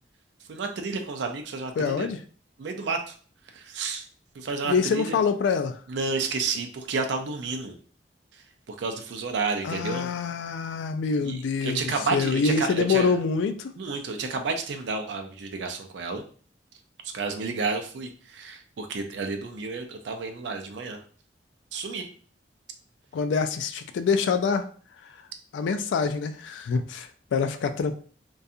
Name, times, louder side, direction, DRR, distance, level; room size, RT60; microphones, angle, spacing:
voice 1, 0.5-2.1 2.6-3.1 3.5-4.1 4.4-5.2 5.9-7.8 8.7-10.1 11.2-13.1 13.8-16.2 17.0-21.0 21.7-22.1, right 4 dB, 75° right, 6 dB, 0.4 m, -31 dB
voice 2, 1.8-2.2 4.6-5.8 9.6-11.8 12.1-13.7 23.1-24.7 25.5-27.9, left 5 dB, 85° left, 9 dB, 0.3 m, -25 dB
2.4 x 2.3 x 2.7 m, 0.43 s
head